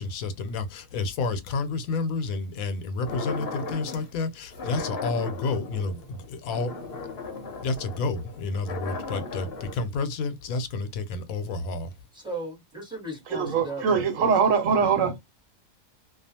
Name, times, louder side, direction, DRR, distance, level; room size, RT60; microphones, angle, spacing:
voice 1, 0.0-6.8 7.6-11.9, left 3 dB, 85° left, 1.0 m, -30 dB
sound 1, 3.1-4.1 4.5-9.7, left 4 dB, 55° left, 0.8 m, -36 dB
voice 2, 12.1-14.3, right 1 dB, 5° right, 1.0 m, -36 dB
voice 3, 13.3-15.2, right 6 dB, 75° right, 1.1 m, -22 dB
2.4 x 2.3 x 2.7 m
omnidirectional pair, 1.4 m